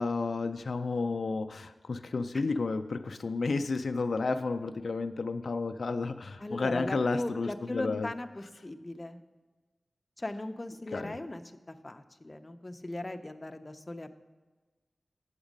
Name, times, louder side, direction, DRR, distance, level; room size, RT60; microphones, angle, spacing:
voice 1, 0.0-8.1 10.9-11.1, left 3 dB, 70° left, 7 dB, 0.3 m, -31 dB
voice 2, 6.4-9.2 10.2-14.1, left 1 dB, 25° left, 7 dB, 0.6 m, -38 dB
8.0 x 7.2 x 5.1 m, 1.3 s
wide cardioid pair, 75°, 0 cm